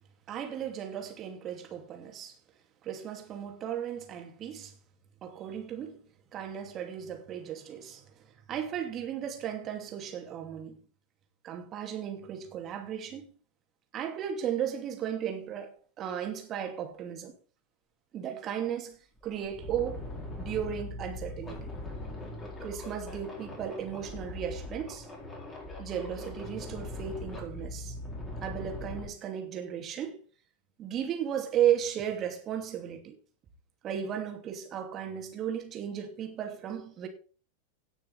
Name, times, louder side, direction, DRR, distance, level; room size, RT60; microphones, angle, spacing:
voice 1, 0.3-2.3 2.8-4.7 5.2-6.1 6.3-8.0 8.5-10.8 11.4-13.2 13.9-17.4 18.1-19.0 19.2-20.1 20.4-21.7 22.6-25.1 25.8-27.9 28.4-30.2 30.8-33.2 33.8-37.1, right 9 dB, 30° right, 2.5 m, -35 dB
sound 1, 18.6-18.7 19.2-29.1, left 1 dB, 15° left, 4.5 m, -41 dB
17.5 x 6.4 x 4.1 m
figure-of-eight pair, 90°, 0 cm